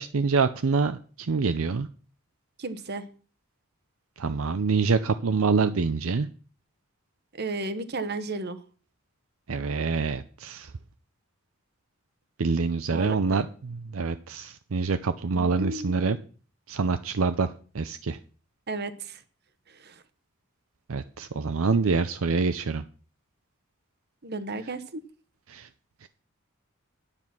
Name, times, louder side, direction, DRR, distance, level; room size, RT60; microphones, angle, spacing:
voice 1, 0.0-1.9 4.2-6.3 9.5-10.7 12.4-16.2 16.7-17.5 17.7-18.2 20.9-22.8 25.5-25.7 26.0-26.1, right 4 dB, 75° right, 11 dB, 0.6 m, -26 dB
voice 2, 2.6-3.1 7.3-8.6 12.9-13.4 15.3-16.0 18.7-19.2 19.7-20.0 24.2-25.0, right 2 dB, 50° right, 12 dB, 1.1 m, -34 dB
9.9 x 8.8 x 6.1 m, 0.40 s
head